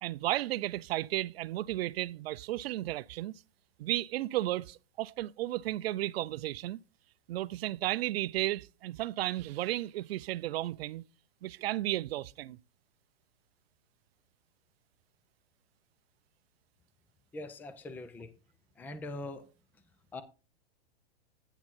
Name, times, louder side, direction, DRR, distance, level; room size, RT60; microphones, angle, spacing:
voice 1, 0.0-3.3 3.8-6.8 7.3-11.0 11.4-12.6, right 15 dB, 65° right, 0.5 m, -33 dB
voice 2, 17.3-18.3 18.8-19.5 20.1-20.2, left 2 dB, 5° left, 0.5 m, -42 dB
8.9 x 7.1 x 3.7 m
hypercardioid pair, 135°, 32 cm